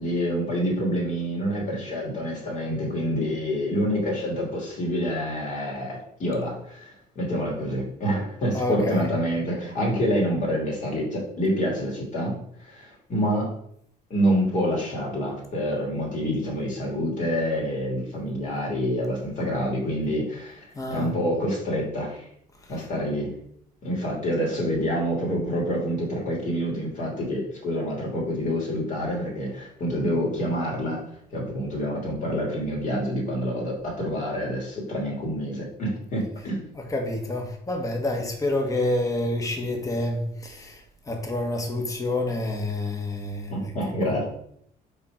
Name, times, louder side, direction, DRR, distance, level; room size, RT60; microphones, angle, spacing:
voice 1, 0.0-12.4 12.6-13.6 14.1-20.6 20.9-22.3 22.7-23.3 23.8-31.0 31.3-36.6 43.5-44.3, equal, 50° left, 2.9 m, -27 dB
voice 2, 8.5-9.1 20.7-21.1 22.6-22.9 36.4-36.5 36.7-43.7 44.0-44.1, left 1 dB, 20° left, 1.3 m, -28 dB
5.4 x 4.3 x 5.1 m
cardioid pair, 110°, 17 cm